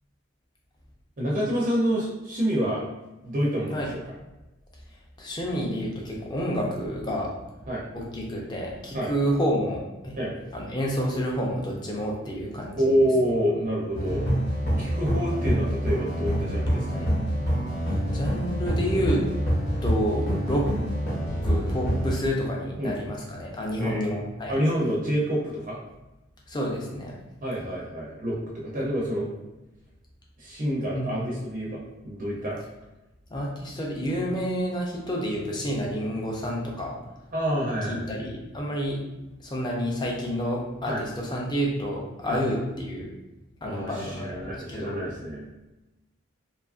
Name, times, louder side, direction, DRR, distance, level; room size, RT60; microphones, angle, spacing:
voice 1, 1.2-2.9 3.2-4.1 7.7-7.8 8.9-9.1 10.2-10.3 12.8-14.3 14.8-17.0 22.8-23.0 23.8-24.2 24.5-25.8 27.4-29.3 30.4-32.6 37.3-38.2 40.9-41.0 42.3-42.4 43.6-45.5, equal, 40° right, -4 dB, 0.4 m, -27 dB
voice 2, 4.9-7.3 7.6-7.7 7.9-10.2 10.5-13.0 16.9-17.1 17.9-19.2 19.8-20.7 21.4-24.6 26.5-27.1 30.9-31.2 33.3-37.0 37.9-39.0 39.4-43.1 43.6-45.0, equal, 20° left, -2 dB, 0.4 m, -29 dB
sound 1, 13.9-22.2, equal, 50° left, 0.9 m, -26 dB
2.7 x 2.4 x 2.4 m, 1.0 s
head